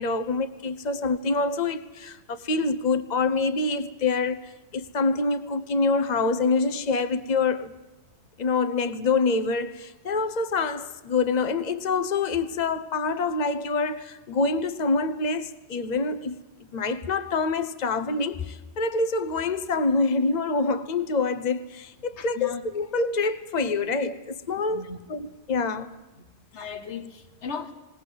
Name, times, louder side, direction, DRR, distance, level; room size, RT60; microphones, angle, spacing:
voice 1, 0.0-7.7 8.4-16.4 16.7-25.9, left 3 dB, 40° left, 1.0 m, -26 dB
voice 2, 22.2-22.6 24.7-25.0 26.5-27.7, left 6 dB, 85° left, 1.5 m, -36 dB
20.5 x 18.5 x 7.8 m
omnidirectional pair, 1.1 m